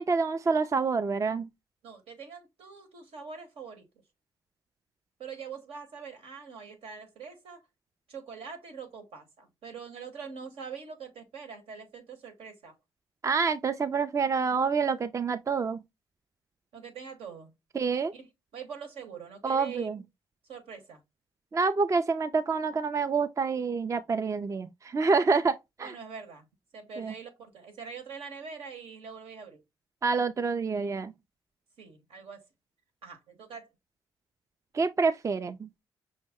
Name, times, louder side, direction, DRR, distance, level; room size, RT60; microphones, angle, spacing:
voice 1, 0.0-1.5 13.2-15.8 17.8-18.1 19.4-20.0 21.5-25.9 27.0-27.1 30.0-31.1 34.7-35.7, right 4 dB, 30° right, 0.4 m, -27 dB
voice 2, 1.8-3.9 5.2-7.6 8.1-12.8 16.7-17.5 18.1-20.0 20.4-21.0 25.8-26.5 26.7-29.6 31.8-32.5 33.0-33.7, right 6 dB, 80° right, 1.1 m, -44 dB
5.3 x 2.1 x 3.4 m
supercardioid pair, 55°, 10 cm